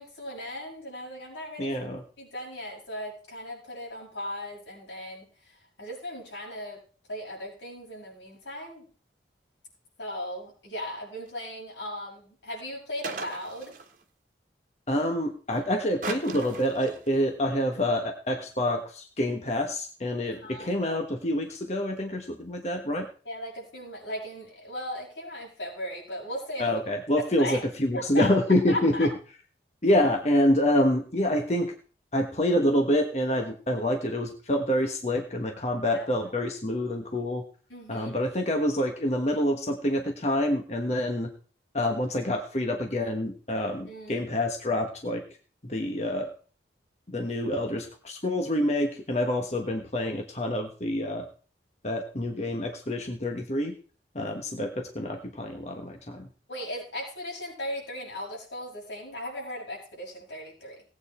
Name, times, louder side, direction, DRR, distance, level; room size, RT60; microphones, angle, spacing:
voice 1, 0.0-1.7 2.2-5.3 5.8-6.8 7.1-8.8 10.0-13.8 20.3-20.8 23.2-26.7 27.4-27.6 27.9-28.3 28.7-29.1 35.9-36.3 37.7-38.2 43.8-44.2 56.5-60.8, equal, 90° left, -2 dB, 6.8 m, -37 dB
voice 2, 1.6-2.0 14.9-23.1 26.6-29.1 29.8-31.7 32.1-37.4 37.9-41.3 41.7-45.2 45.6-46.3 47.1-51.3 51.8-53.7 54.1-56.3, left 1 dB, 35° left, 3 dB, 1.3 m, -27 dB
sound 1, 13.0-14.0 16.0-17.2, right 4 dB, 45° right, 1.4 m, -38 dB
17.5 x 8.7 x 4.3 m, 0.41 s
head